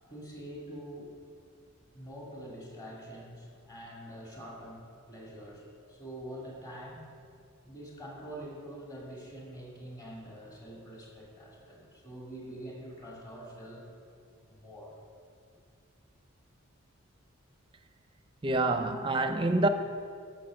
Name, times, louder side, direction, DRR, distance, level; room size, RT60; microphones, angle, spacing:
voice 1, 0.1-1.2 1.9-7.1 7.6-13.9 14.5-15.0 18.8-19.1, right 1 dB, 20° left, 2.4 m, -45 dB
voice 2, 18.4-19.7, right 2 dB, 25° right, 0.6 m, -27 dB
12.5 x 6.9 x 6.4 m
head